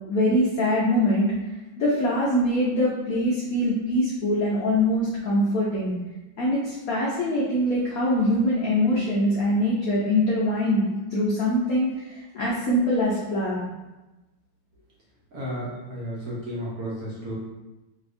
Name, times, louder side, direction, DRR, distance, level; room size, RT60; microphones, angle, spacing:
voice 1, 0.1-1.3 1.8-5.9 6.4-10.9 11.1-13.6 15.6-15.7, left 1 dB, 80° left, -6 dB, 0.7 m, -23 dB
voice 2, 15.3-15.6 15.9-17.4, equal, 60° right, -6 dB, 1.1 m, -32 dB
3.3 x 2.7 x 2.5 m, 1.1 s
omnidirectional pair, 2.2 m